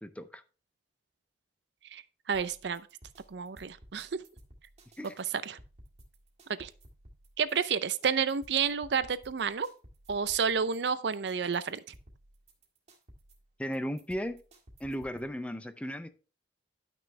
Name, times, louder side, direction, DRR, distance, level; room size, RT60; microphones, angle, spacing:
voice 1, 0.0-0.4 5.0-5.2 13.6-14.4 14.8-16.1, equal, 5° left, 0.5 m, -36 dB
sound 1, 2.3-15.3, right 1 dB, 40° right, 1.9 m, -57 dB
voice 2, 2.3-2.8 3.3-4.2 5.2-5.6 6.6-6.7 7.4-9.7 10.1-11.8, right 6 dB, 65° right, 0.5 m, -30 dB
11.0 x 6.1 x 3.3 m
head